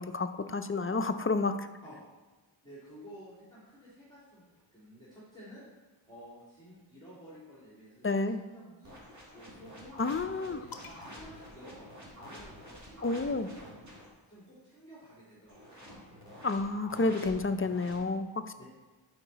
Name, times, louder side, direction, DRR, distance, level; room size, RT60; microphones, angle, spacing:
voice 1, 0.0-1.7 8.0-8.4 10.0-10.6 13.0-13.5 16.4-18.6, left 3 dB, 30° left, 9 dB, 0.5 m, -30 dB
voice 2, 2.6-5.6 6.1-8.9 9.3-10.0 10.4-13.8 14.3-16.2 18.6-18.7, equal, 10° left, -9 dB, 2.6 m, -52 dB
sound 1, 8.8-14.1 15.5-18.0, equal, 35° right, 2.2 m, -49 dB
sound 2, 10.7-12.5 13.6-15.3, left 5 dB, 45° left, 0.8 m, -54 dB
10.5 x 4.7 x 4.0 m, 1.2 s
wide cardioid pair, 45°, 47 cm